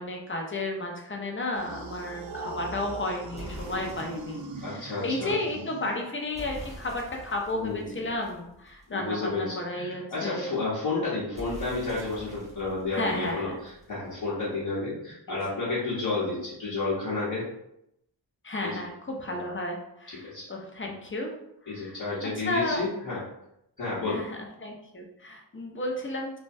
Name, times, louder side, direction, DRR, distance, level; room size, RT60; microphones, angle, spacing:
voice 1, 0.0-10.5 12.9-13.6 15.3-15.4 18.4-21.3 21.6-22.0 22.4-22.8 24.0-26.4, left 2 dB, 30° left, 1 dB, 0.5 m, -33 dB
sound 1, 1.5-6.3, right 2 dB, 60° right, 0.5 m, -40 dB
sound 2, 3.3-4.6 6.3-9.1 11.3-14.1, left 1 dB, 15° right, 0.8 m, -45 dB
voice 2, 4.6-5.4 7.5-7.9 8.9-17.4 18.6-18.8 19.3-19.4 20.1-20.5 21.7-23.2 23.8-24.2, left 3 dB, 60° left, -9 dB, 0.9 m, -31 dB
3.2 x 2.1 x 2.6 m, 0.80 s
wide cardioid pair, 95°, 42 cm